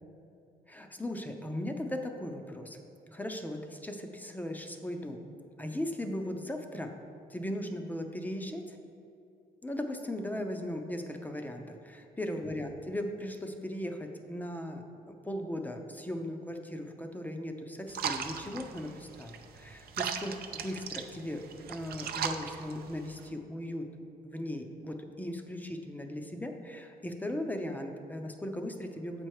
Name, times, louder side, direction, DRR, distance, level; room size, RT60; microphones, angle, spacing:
voice 1, 0.7-2.8 3.1-5.2 5.6-7.0 7.3-8.8 9.6-14.8 15.2-21.4 21.7-23.9 24.2-29.3, left 1 dB, 10° left, 4 dB, 0.6 m, -38 dB
sound 1, 17.9-23.3, right 7 dB, 65° right, 0.5 m, -38 dB
7.4 x 4.5 x 4.7 m, 2.7 s
cardioid pair, 105°, 17 cm